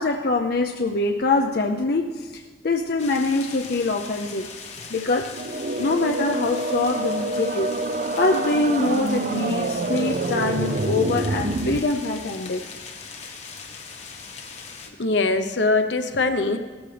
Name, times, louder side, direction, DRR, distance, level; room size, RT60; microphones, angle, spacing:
voice 1, 0.0-4.5 4.9-5.3 5.8-7.7 8.2-12.6, left 2 dB, 60° left, 3 dB, 0.6 m, -24 dB
sound 1, 3.0-14.9, left 5 dB, 40° left, 1.2 m, -40 dB
sound 2, 5.3-11.8, right 2 dB, 45° right, 0.4 m, -27 dB
voice 2, 15.0-16.6, left 3 dB, 80° left, 8 dB, 0.9 m, -22 dB
17.5 x 13.0 x 3.4 m, 1.5 s
head